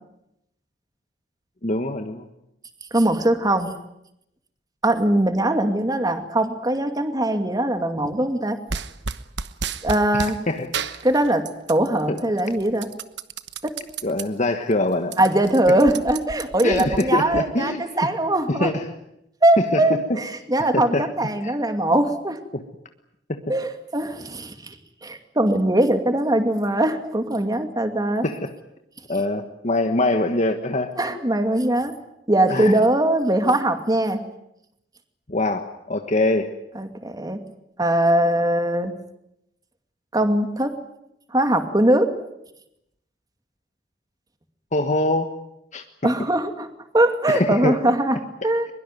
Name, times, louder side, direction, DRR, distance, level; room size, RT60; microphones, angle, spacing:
voice 1, 1.6-2.3 10.1-10.7 12.1-12.2 14.0-15.1 16.6-17.8 18.5-18.9 19.6-19.8 20.7-21.1 21.4-21.5 22.5-22.6 23.3-23.4 28.2-28.5 29.1-30.9 32.5-32.8 35.3-36.5 44.7-45.3 45.7-46.1 47.3-47.8, left 2 dB, 40° left, 6 dB, 1.5 m, -23 dB
voice 2, 2.9-3.7 4.8-8.6 9.8-10.4 11.0-12.9 13.6-13.7 15.2-18.7 19.4-22.4 23.5-24.8 25.0-28.3 31.0-31.9 32.3-34.2 36.8-37.4 37.8-38.9 40.1-40.7 41.3-42.1 46.0-46.7 46.9-48.7, right 1 dB, 20° right, 7 dB, 2.5 m, -21 dB
sound 1, 8.7-10.4 10.7-11.9 12.2-14.3 14.7-14.8 15.0-17.4, right 5 dB, 65° right, 1.2 m, -32 dB
23.0 x 22.5 x 9.3 m, 0.81 s
head